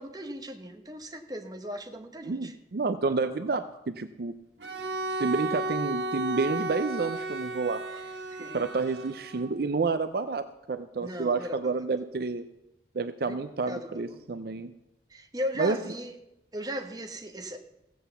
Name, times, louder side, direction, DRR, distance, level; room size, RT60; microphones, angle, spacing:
voice 1, 0.0-2.5 3.1-3.2 7.9-8.7 11.0-11.8 13.2-13.4 13.7-14.2 15.1-16.1 16.5-17.6, equal, 20° right, 5 dB, 1.1 m, -38 dB
voice 2, 2.2-4.3 5.1-7.8 8.5-12.4 12.9-14.7 15.6-15.8, right 4 dB, 55° right, 10 dB, 0.5 m, -29 dB
Bowed string instrument, 4.6-9.6, right 2 dB, 80° right, 1.5 m, -33 dB
15.5 x 7.8 x 7.0 m, 0.89 s
head